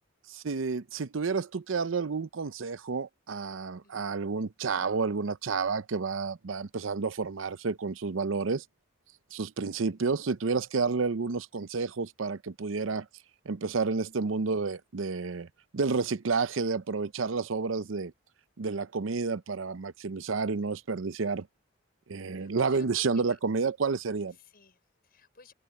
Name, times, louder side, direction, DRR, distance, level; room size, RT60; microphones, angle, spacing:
voice 1, 0.3-8.6 9.3-13.1 13.5-15.5 15.7-18.1 18.6-21.5 22.1-24.3, right 4 dB, 85° right, 0.6 m, -30 dB
voice 2, 3.8-4.3 9.6-10.1 22.3-23.4 24.3-25.5, left 4 dB, 50° left, 5.7 m, -58 dB
head